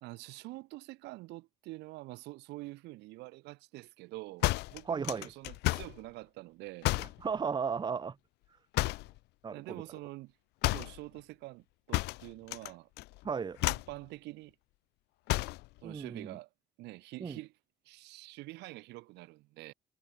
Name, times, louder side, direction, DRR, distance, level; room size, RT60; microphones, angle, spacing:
voice 1, 0.0-6.9 9.5-10.3 10.7-12.9 13.7-14.5 15.8-16.5 16.8-17.5 17.8-19.7, right 21 dB, 90° right, 1.4 m, -46 dB
sound 1, 4.4-6.0 6.8-7.2 8.7-9.2 10.6-11.0 11.9-12.7 13.0-13.2 13.6-14.0 15.3-15.7, left 21 dB, 80° left, 0.4 m, -31 dB
voice 2, 4.9-5.3 7.2-8.2 9.4-9.8 13.2-13.6 15.8-16.4 17.2-17.4, right 6 dB, 25° right, 1.0 m, -35 dB
cardioid pair, 110°, 17 cm